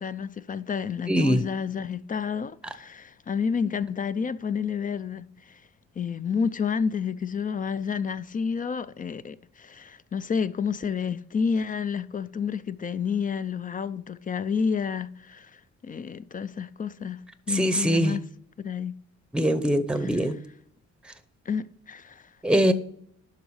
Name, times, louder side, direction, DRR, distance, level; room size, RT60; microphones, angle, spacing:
voice 1, 0.0-5.6 6.0-17.2 17.5-18.2 18.6-18.9 20.0-20.1 21.5-22.3, left 6 dB, 30° left, 0.4 m, -30 dB
voice 2, 1.1-1.4 17.5-18.2 19.3-20.4 22.4-22.7, equal, 5° right, 0.7 m, -22 dB
11.5 x 3.9 x 4.8 m
cardioid pair, 90°, 30 cm